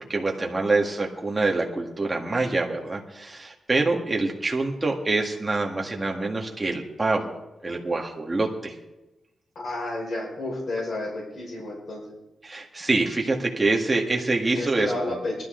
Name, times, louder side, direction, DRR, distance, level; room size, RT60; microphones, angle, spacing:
voice 1, 0.1-7.3 7.6-8.7 12.4-15.2, right 3 dB, 20° right, 0 dB, 1.9 m, -25 dB
voice 2, 9.6-12.2 14.5-15.4, left 2 dB, 55° left, -3 dB, 5.4 m, -31 dB
20.0 x 12.5 x 3.9 m, 1.0 s
wide cardioid pair, 135°, 0 cm